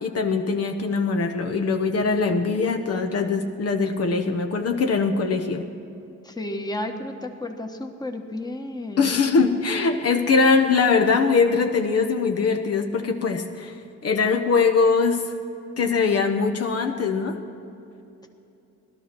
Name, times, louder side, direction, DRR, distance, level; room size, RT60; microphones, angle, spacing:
voice 1, 0.0-5.7 9.0-13.7 14.0-15.2 15.8-17.4, left 4 dB, 55° left, 4 dB, 1.1 m, -22 dB
voice 2, 6.2-9.1, left 1 dB, 15° left, 4 dB, 1.3 m, -32 dB
17.5 x 12.5 x 6.1 m, 2.8 s
cardioid pair, 105°, 29 cm